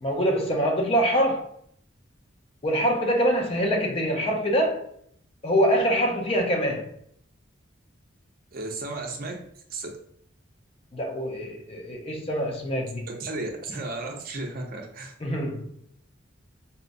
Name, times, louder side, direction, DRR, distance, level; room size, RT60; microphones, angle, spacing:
voice 1, 0.0-1.4 2.6-4.8 5.4-6.9 10.9-13.1 15.2-15.7, equal, 30° left, 0.5 m, -24 dB
voice 2, 8.5-9.9 13.1-15.1, right 2 dB, 50° right, 0.5 m, -34 dB
4.2 x 2.0 x 2.5 m
head